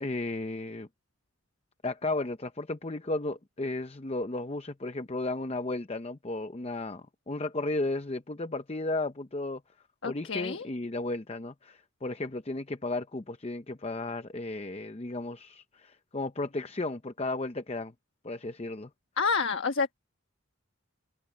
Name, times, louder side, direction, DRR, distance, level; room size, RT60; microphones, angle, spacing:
voice 1, 0.0-0.9 1.8-9.6 10.0-17.9 18.2-18.9, left 2 dB, 30° left, 0.6 m, -34 dB
voice 2, 10.0-10.6 19.2-19.9, left 5 dB, 70° left, 1.2 m, -28 dB
head